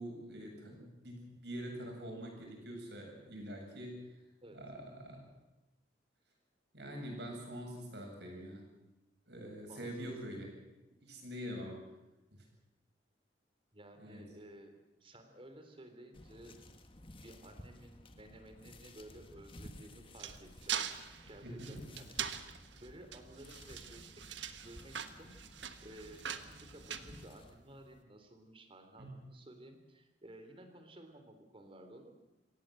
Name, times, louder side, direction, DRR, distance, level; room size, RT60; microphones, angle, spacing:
voice 1, 0.0-4.2 4.5-5.2 6.7-8.6 9.3-10.5 11.0-11.8 12.3-12.4 14.0-14.2 21.4-21.9 29.0-29.1, equal, 65° right, 1 dB, 7.9 m, -45 dB
voice 2, 9.7-10.1 13.7-14.7 15.0-16.6 17.2-20.8 21.2-32.1, right 1 dB, 30° right, 7 dB, 3.3 m, -55 dB
sound 1, 16.1-27.5, left 1 dB, 30° left, 1.7 m, -55 dB
sound 2, 19.6-27.8, right 9 dB, 85° right, 1.4 m, -43 dB
26.5 x 17.0 x 7.8 m, 0.99 s
head